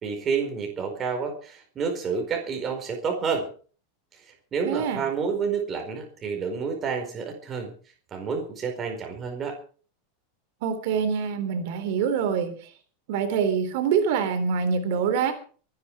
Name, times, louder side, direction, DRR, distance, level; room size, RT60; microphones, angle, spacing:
voice 1, 0.0-3.5 4.5-7.7 8.1-9.6, right 5 dB, 20° right, 4 dB, 4.6 m, -29 dB
voice 2, 4.6-5.0 10.6-12.6 13.1-15.3, right 6 dB, 55° right, 8 dB, 3.5 m, -25 dB
24.0 x 10.5 x 4.8 m, 0.41 s
supercardioid pair, 165°, 0 cm